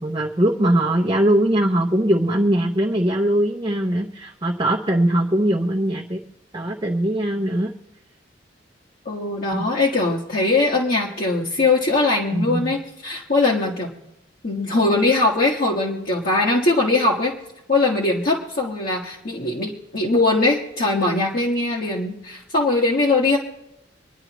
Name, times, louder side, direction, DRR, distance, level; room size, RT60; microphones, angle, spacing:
voice 1, 0.0-6.2 6.5-7.7 9.5-9.7 12.3-12.7, right 1 dB, 25° right, 0 dB, 0.8 m, -21 dB
voice 2, 9.0-13.9 14.4-17.3 17.7-23.4, left 2 dB, 50° left, -4 dB, 1.4 m, -21 dB
26.0 x 10.5 x 3.0 m, 0.87 s
head